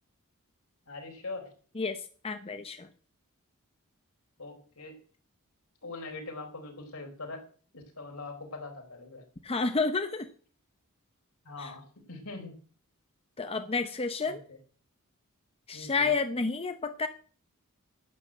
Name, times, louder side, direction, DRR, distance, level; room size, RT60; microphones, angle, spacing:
voice 1, 0.9-1.5 4.4-5.0 5.8-7.4 7.7-9.2 11.4-12.6 14.3-14.6 15.7-16.1, left 3 dB, 70° left, 3 dB, 4.1 m, -42 dB
voice 2, 1.8-2.9 9.4-10.3 11.6-11.7 13.4-14.4 15.7-17.1, left 4 dB, 25° left, 8 dB, 0.7 m, -30 dB
11.5 x 8.3 x 8.0 m, 0.43 s
head